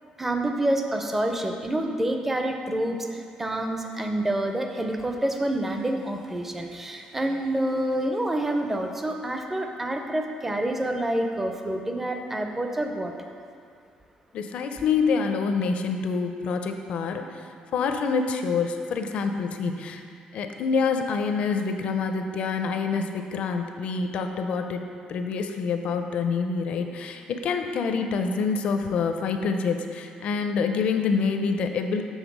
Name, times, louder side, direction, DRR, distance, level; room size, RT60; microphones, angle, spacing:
voice 1, 0.2-13.1, right 1 dB, 10° right, 4 dB, 0.4 m, -27 dB
voice 2, 14.3-20.0 20.3-32.0, left 5 dB, 55° left, 6 dB, 0.5 m, -27 dB
7.2 x 3.6 x 6.0 m, 2.3 s
cardioid pair, 170°, 2 cm